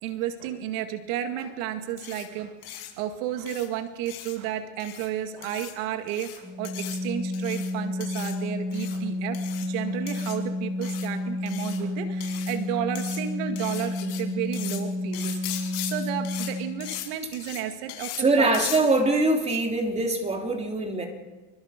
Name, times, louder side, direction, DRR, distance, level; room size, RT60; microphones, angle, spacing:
voice 1, 0.0-18.5, right 10 dB, 80° right, 7 dB, 2.1 m, -32 dB
sound 1, 2.0-2.2 2.6-2.9 3.5-3.7 4.1-4.3 4.8-5.1 5.4-5.7 6.1-6.4 6.6-7.0 7.3-7.7 8.0-8.3 8.7-9.0 9.3-9.7 10.1-10.3 10.8-11.1 11.5-11.8 12.2-12.6 13.0-13.2 13.6-14.2 14.5-14.8 15.1-15.9 16.2-16.5 16.8-17.1 17.3-17.6 17.9-18.2 18.5-18.8, left 14 dB, 70° left, 6.8 m, -38 dB
Organ, 6.4-17.0, left 2 dB, 5° left, 7.1 m, -31 dB
voice 2, 18.2-21.1, right 2 dB, 15° right, 2 dB, 3.5 m, -23 dB
29.0 x 23.5 x 5.3 m, 1.3 s
supercardioid pair, 130°, 39 cm